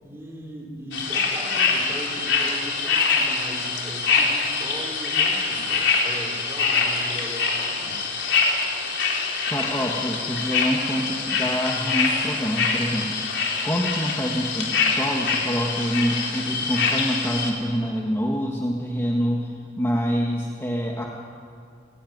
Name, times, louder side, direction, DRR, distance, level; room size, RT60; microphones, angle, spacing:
voice 1, 0.0-8.0, equal, 15° right, -1 dB, 5.0 m, -38 dB
sound 1, 0.9-17.5, left 4 dB, 85° left, 4.3 m, -24 dB
voice 2, 9.5-13.2 13.4-21.1, equal, 15° left, -1 dB, 1.8 m, -26 dB
29.5 x 17.5 x 9.5 m, 2.4 s
head